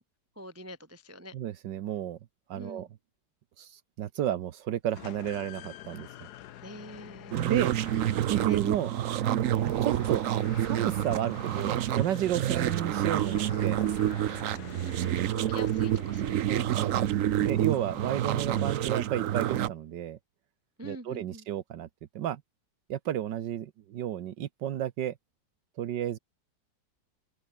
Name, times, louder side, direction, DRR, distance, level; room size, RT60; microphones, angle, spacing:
voice 1, 0.4-1.4 2.5-2.9 6.6-7.5 8.5-8.6 15.0-17.1 20.8-21.5, equal, 10° right, 0.7 m, -45 dB
voice 2, 1.3-2.2 2.5-2.9 3.6-6.1 7.3-7.7 8.3-8.9 9.6-10.3 10.6-13.8 16.5-17.0 17.4-20.2 20.8-21.9 22.1-22.4 22.9-25.1 25.8-26.2, right 11 dB, 80° right, 1.6 m, -32 dB
sound 1, 4.9-19.2, left 12 dB, 70° left, 1.3 m, -47 dB
Snew Elcitra, 7.3-19.7, right 12 dB, 60° right, 0.9 m, -28 dB
omnidirectional pair, 1.9 m